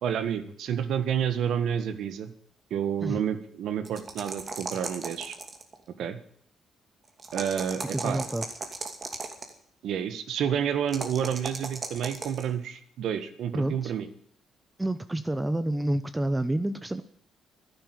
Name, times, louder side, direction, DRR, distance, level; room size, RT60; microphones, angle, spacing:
voice 1, 0.0-2.3 2.7-5.4 6.0-6.2 7.3-8.3 9.8-14.1, right 8 dB, 75° right, 10 dB, 1.8 m, -29 dB
sound 1, 3.8-5.7 7.2-9.5 10.9-12.5, right 4 dB, 40° right, 2.6 m, -36 dB
voice 2, 7.9-8.5 13.5-13.9 14.8-17.0, right 1 dB, 10° right, 11 dB, 0.8 m, -28 dB
11.5 x 10.5 x 9.4 m, 0.63 s
cardioid pair, 90°, 0 cm